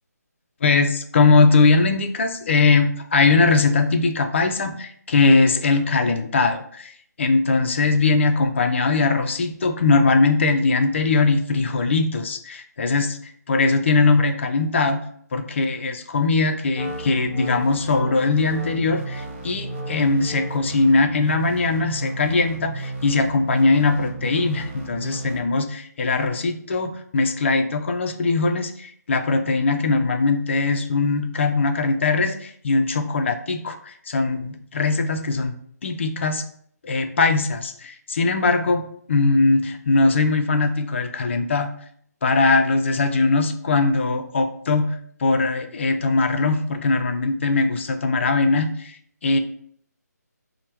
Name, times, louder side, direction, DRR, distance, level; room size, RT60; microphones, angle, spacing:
voice 1, 0.6-6.9 7.2-13.2 13.5-15.1 15.3-35.5 35.8-36.5 36.8-41.7 42.2-48.9 49.2-49.4, left 3 dB, 45° left, 6 dB, 0.4 m, -20 dB
Wind instrument woodwind instrument, 16.7-20.8, left 2 dB, 15° left, 0.9 m, -40 dB
sound 1, 16.8-25.4, right 2 dB, 40° right, 0.8 m, -34 dB
4.2 x 2.1 x 3.3 m, 0.63 s
figure-of-eight pair, 160°, 9 cm